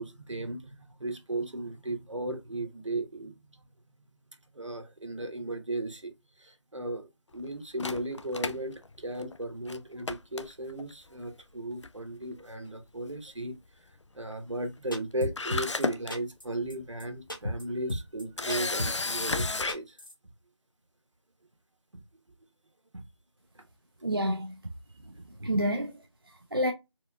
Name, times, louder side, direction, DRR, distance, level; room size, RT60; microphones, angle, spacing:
voice 1, 0.0-3.3 4.5-6.1 6.4-7.1 7.3-13.6 14.1-20.0 21.9-22.0 22.9-23.0 23.5-23.6, right 1 dB, 85° right, 1.0 m, -36 dB
Camera, 7.8-9.4 9.7-9.8 10.1-10.9 11.8-12.1 12.4-12.5 14.9-15.0 15.4-16.1 16.7-16.8 18.4-19.7, left 3 dB, 75° left, 0.5 m, -32 dB
sound 1, 14.9-15.8 16.1-16.4 16.7-16.8 17.0-17.1 17.3-17.6 17.9-18.2 18.5-19.1 19.4-20.1, left 1 dB, 45° left, 0.9 m, -33 dB
voice 2, 24.0-24.6 25.1-25.2 25.4-26.7, equal, 50° right, 0.4 m, -30 dB
4.3 x 2.3 x 2.3 m
figure-of-eight pair, 180°, 15 cm